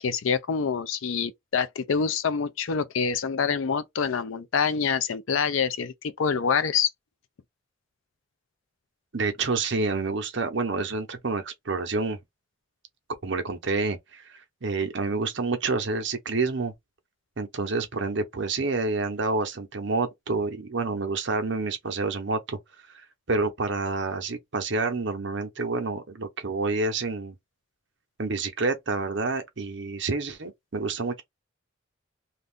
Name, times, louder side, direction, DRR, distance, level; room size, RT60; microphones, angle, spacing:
voice 1, 0.0-6.9, left 6 dB, 75° left, 0.5 m, -26 dB
voice 2, 9.1-12.2 13.2-16.7 17.4-22.6 22.9-27.3 28.2-31.2, right 3 dB, 60° right, 0.8 m, -28 dB
2.6 x 2.4 x 3.5 m
head